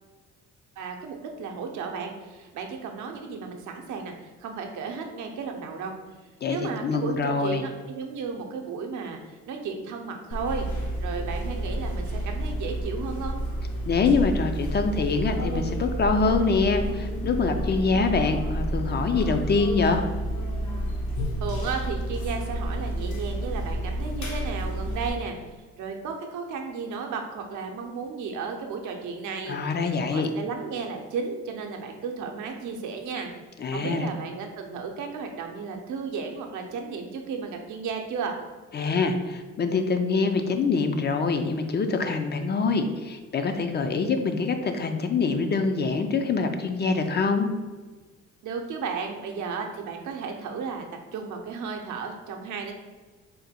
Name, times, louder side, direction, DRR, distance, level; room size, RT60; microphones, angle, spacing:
voice 1, 0.8-5.9 6.5-13.4 21.4-25.4 25.8-29.8 30.1-33.3 33.7-38.4 48.4-50.8 51.1-52.7, right 5 dB, 75° right, 3 dB, 0.6 m, -34 dB
voice 2, 6.4-7.6 13.9-20.0 29.5-30.3 33.6-34.1 38.7-47.5, left 4 dB, 35° left, 6 dB, 0.4 m, -25 dB
sound 1, 10.3-25.1, right 1 dB, 75° left, 1.0 m, -30 dB
3.8 x 2.2 x 4.1 m, 1.3 s
cardioid pair, 90°, 30 cm